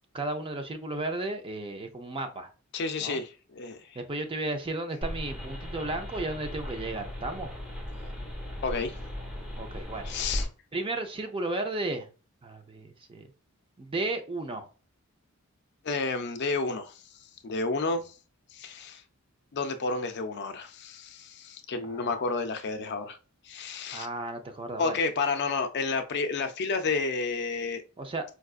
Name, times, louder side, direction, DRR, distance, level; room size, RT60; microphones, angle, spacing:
voice 1, 0.1-2.5 3.0-3.2 4.0-7.5 9.6-10.1 10.7-12.1 12.4-13.3 13.8-14.7 21.9-22.1 23.9-24.9 28.0-28.2, right 2 dB, 25° right, 0.5 m, -34 dB
voice 2, 2.7-4.0 8.6-9.0 10.0-10.5 15.8-16.9 17.4-18.1 18.5-19.0 19.5-23.2 23.5-24.1 24.8-27.8, left 4 dB, 50° left, 0.5 m, -31 dB
sound 1, 5.0-10.5, left 1 dB, 5° right, 1.0 m, -37 dB
4.6 x 2.4 x 2.4 m
head